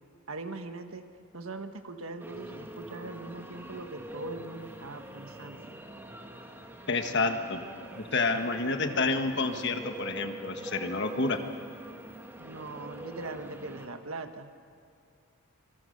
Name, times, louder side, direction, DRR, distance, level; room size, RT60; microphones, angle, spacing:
voice 1, 0.3-1.1 1.3-5.7 7.2-7.4 12.4-14.5, right 3 dB, 75° right, 7 dB, 1.5 m, -41 dB
sound 1, 2.2-13.9, right 1 dB, 10° right, 1.4 m, -44 dB
voice 2, 6.9-7.6 7.9-11.4, left 3 dB, 55° left, 6 dB, 1.4 m, -29 dB
26.5 x 20.0 x 6.6 m, 2.2 s
head